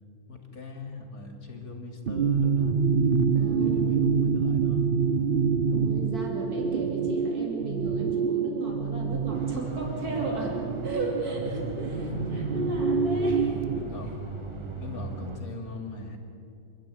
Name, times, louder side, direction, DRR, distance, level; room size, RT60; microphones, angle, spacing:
voice 1, 0.3-2.8 3.4-4.9 11.8-12.9 13.8-14.2 14.7-16.2, left 2 dB, 70° left, 3 dB, 3.4 m, -39 dB
sound 1, 2.1-13.8, right 5 dB, 45° right, 0.8 m, -26 dB
voice 2, 3.3-3.9 5.7-10.6 10.8-12.1 12.5-13.7, right 3 dB, 80° right, -1 dB, 3.4 m, -35 dB
sound 2, 9.3-15.4, right 2 dB, 20° right, 1.5 m, -38 dB
28.0 x 12.0 x 9.3 m, 2.5 s
omnidirectional pair, 1.6 m